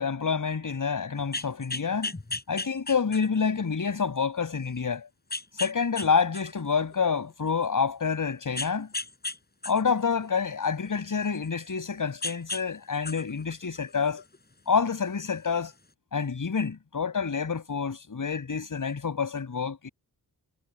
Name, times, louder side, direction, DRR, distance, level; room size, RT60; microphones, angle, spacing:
voice 1, 0.0-2.1 2.5-5.1 5.6-8.9 9.6-14.2 14.7-15.7 16.1-19.9, left 5 dB, 55° left, 6.1 m, -28 dB
sound 1, 1.2-3.5 4.0-4.1 5.3-6.1 6.3-7.7 8.6-9.4 9.6-11.8 12.2-12.6 12.9-14.4 15.4-15.5, left 2 dB, 25° left, 7.8 m, -35 dB
wide cardioid pair, 95°, 37 cm